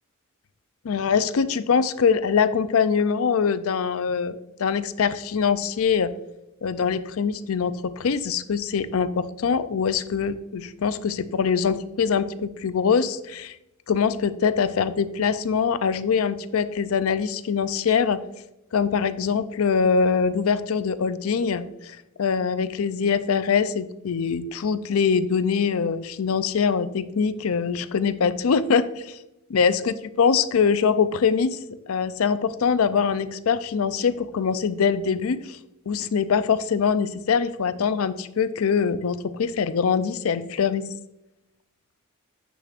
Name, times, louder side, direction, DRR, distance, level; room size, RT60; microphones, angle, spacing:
voice 1, 0.8-6.1 6.6-13.6 13.9-18.2 18.7-29.2 29.5-31.6 31.9-35.6 35.9-40.8, left 6 dB, 70° left, 14 dB, 0.5 m, -23 dB
8.5 x 6.9 x 2.5 m, 0.91 s
head